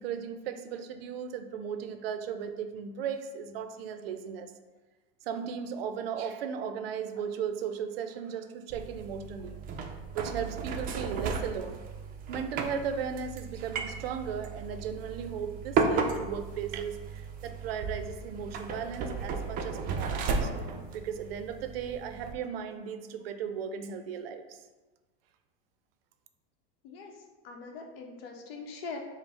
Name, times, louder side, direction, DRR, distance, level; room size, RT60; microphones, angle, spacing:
voice 1, 0.0-4.5 5.3-9.6 10.1-11.8 12.3-20.5 20.9-24.4, right 7 dB, 90° right, 8 dB, 0.4 m, -36 dB
sound 1, 8.7-22.3, right 5 dB, 30° right, 0.4 m, -34 dB
voice 2, 26.8-29.0, left 4 dB, 80° left, 1 dB, 0.7 m, -42 dB
5.0 x 2.0 x 3.4 m, 1.2 s
supercardioid pair, 125°, 29 cm